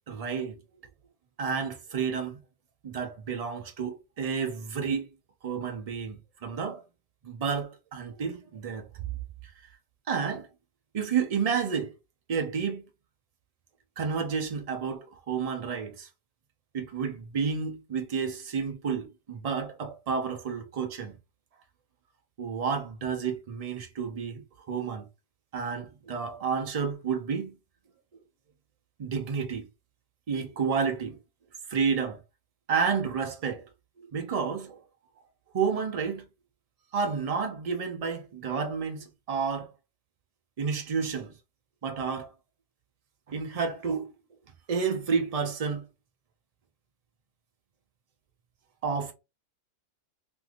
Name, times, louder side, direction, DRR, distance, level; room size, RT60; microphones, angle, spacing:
voice 1, 0.1-0.6 1.4-2.4 2.8-5.1 5.4-6.8 7.2-8.9 10.1-10.5 10.9-11.9 12.3-12.8 14.0-16.1 16.7-21.1 22.4-25.1 25.5-27.6 29.0-29.6 30.3-31.2 31.7-32.2 32.7-33.7 34.0-34.8 35.5-36.3 36.9-39.7 40.6-41.3 41.8-42.3 43.3-44.1 44.7-45.8 48.8-49.1, right 6 dB, 65° right, 0.3 m, -30 dB
2.6 x 2.4 x 2.7 m
omnidirectional pair, 1.3 m